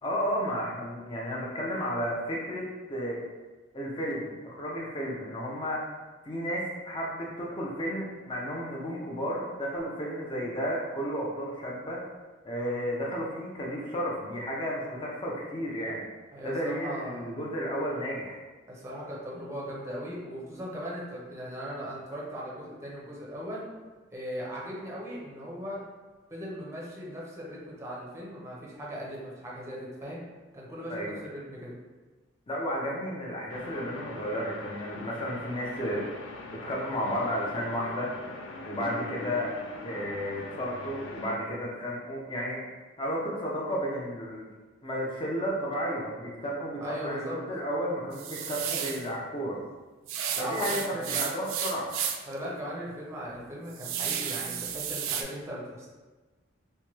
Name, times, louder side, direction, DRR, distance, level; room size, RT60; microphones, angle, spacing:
voice 1, 0.0-3.2 3.7-5.8 6.2-12.0 12.4-16.0 16.4-18.4 30.9-31.2 32.5-36.0 36.6-38.1 38.6-39.5 39.8-42.6 43.0-44.5 44.8-49.6 50.4-51.9, equal, 25° left, -3 dB, 0.6 m, -32 dB
voice 2, 16.3-17.3 18.7-23.6 24.1-25.8 26.3-30.2 30.5-31.8 46.8-47.4 50.3-51.2 52.3-55.9, equal, 15° right, -5 dB, 0.6 m, -38 dB
sound 1, 33.5-41.3, left 2 dB, 75° left, 0.4 m, -42 dB
sound 2, 48.1-49.1 50.1-52.3 52.8-52.9 53.3-55.2, right 8 dB, 80° right, 0.3 m, -33 dB
2.9 x 2.2 x 3.0 m, 1.2 s
head